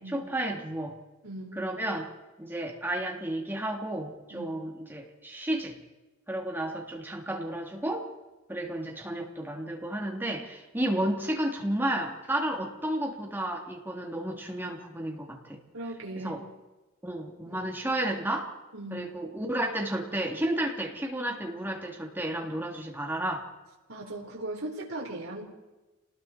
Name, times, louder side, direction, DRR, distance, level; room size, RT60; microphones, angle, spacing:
voice 1, 0.1-0.9 1.6-2.1 2.4-5.7 6.3-8.0 8.5-15.6 16.2-16.4 17.0-18.5 18.9-23.5, right 1 dB, 10° right, 0 dB, 3.2 m, -32 dB
voice 2, 1.2-1.6 4.3-4.5 15.7-16.4 17.4-17.7 18.7-19.0 23.9-25.4, right 2 dB, 70° right, -2 dB, 4.6 m, -38 dB
29.5 x 20.0 x 4.5 m, 1.1 s
head